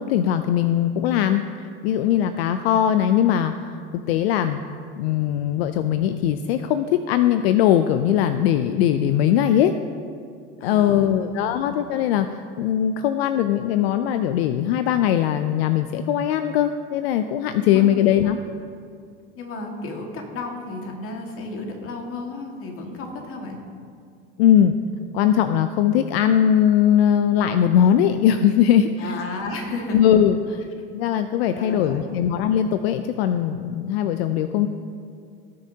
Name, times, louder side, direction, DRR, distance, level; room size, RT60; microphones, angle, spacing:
voice 1, 0.0-4.6 5.0-9.8 10.6-18.4 24.4-24.8 25.1-29.1 29.9-30.6 30.9-34.7, left 10 dB, 80° left, 10 dB, 0.5 m, -20 dB
voice 2, 10.6-11.7 17.5-18.1 19.4-23.6 29.0-30.1 31.5-32.2, left 3 dB, 45° left, 2 dB, 1.9 m, -33 dB
18.5 x 6.6 x 2.8 m, 2.3 s
hypercardioid pair, 95°, 30 cm